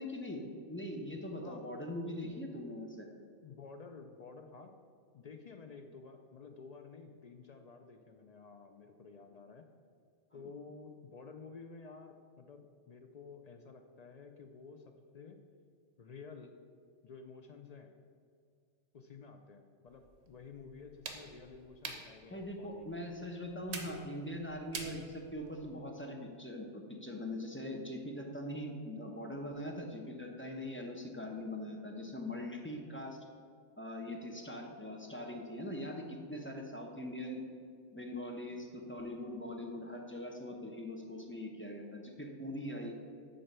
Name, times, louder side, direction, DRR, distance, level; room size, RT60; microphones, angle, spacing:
voice 1, 0.0-3.1 10.3-10.4 22.3-33.2 33.8-37.4 37.9-43.0, left 1 dB, 15° left, 1 dB, 0.6 m, -42 dB
voice 2, 3.4-4.7 5.1-9.7 10.3-15.4 16.0-16.6 17.0-17.9 18.9-23.0, left 4 dB, 65° left, 5 dB, 0.4 m, -52 dB
sound 1, 19.9-25.8, right 4 dB, 65° right, 1.1 m, -48 dB
7.7 x 4.0 x 6.6 m, 2.2 s
omnidirectional pair, 1.2 m